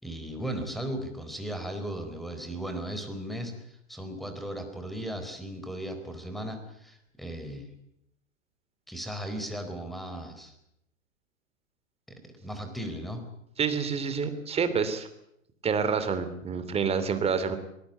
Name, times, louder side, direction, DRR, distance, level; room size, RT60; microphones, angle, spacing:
voice 1, 0.0-7.7 8.9-10.5 12.1-13.2, right 1 dB, ahead, 7 dB, 4.3 m, -36 dB
voice 2, 13.6-15.1 15.6-17.6, right 6 dB, 15° right, 10 dB, 3.0 m, -28 dB
24.0 x 20.5 x 8.3 m, 0.77 s
hypercardioid pair, 125°, 39 cm